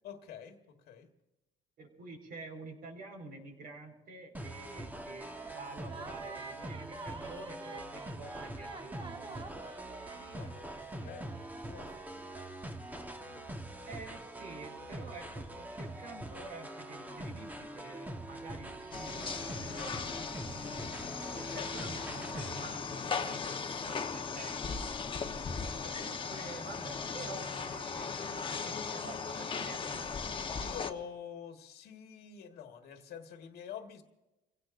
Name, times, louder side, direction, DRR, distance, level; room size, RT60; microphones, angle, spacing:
voice 1, 0.0-1.1 4.6-4.9 10.3-12.2 21.4-21.7 25.6-26.1 30.6-34.0, left 8 dB, 70° left, 4 dB, 1.7 m, -47 dB
voice 2, 1.8-9.6 13.8-21.1 21.4-24.7 26.0-30.2, right 3 dB, 60° right, 3 dB, 4.9 m, -49 dB
sound 1, 4.3-22.6, right 1 dB, 10° right, 1.3 m, -44 dB
sound 2, 5.2-5.6 5.9-12.5, right 4 dB, 30° right, 1.1 m, -49 dB
sound 3, 18.9-30.9, left 5 dB, 30° left, 1.2 m, -38 dB
29.5 x 17.0 x 2.6 m, 1.0 s
cardioid pair, 110°, 17 cm